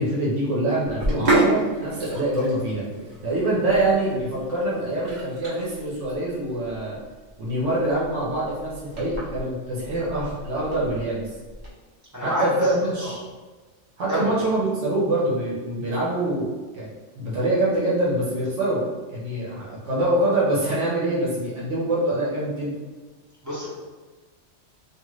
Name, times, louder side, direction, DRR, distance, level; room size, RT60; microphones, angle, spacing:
voice 1, 0.0-2.8 3.2-7.0 7.4-11.3 12.2-13.2 14.0-16.9 17.2-18.8 19.1-22.7, right 1 dB, 75° right, -6 dB, 1.1 m, -25 dB
Sink (filling or washing), 0.9-11.7, right 2 dB, 40° right, 0.9 m, -30 dB
voice 2, 12.1-12.7 13.0-13.1 14.1-14.3 23.4-23.7, equal, 20° right, -9 dB, 0.5 m, -27 dB
2.5 x 2.5 x 3.1 m, 1.3 s
omnidirectional pair, 1.3 m